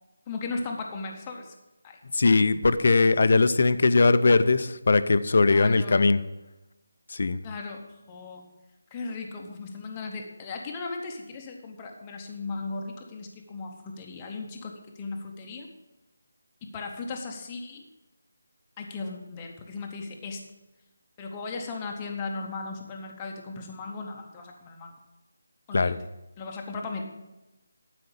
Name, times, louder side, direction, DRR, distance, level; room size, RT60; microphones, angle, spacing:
voice 1, 0.3-1.5 1.8-2.0 5.5-6.1 7.4-8.5 8.9-15.7 16.6-17.8 18.8-20.4 21.2-25.0 25.7-25.9 26.4-27.0, left 3 dB, 10° left, 1 dB, 0.7 m, -37 dB
voice 2, 2.1-6.2 7.1-7.4 25.7-26.0, left 3 dB, 40° left, 13 dB, 0.5 m, -20 dB
11.5 x 5.0 x 6.8 m, 1.0 s
figure-of-eight pair, 180°, 0 cm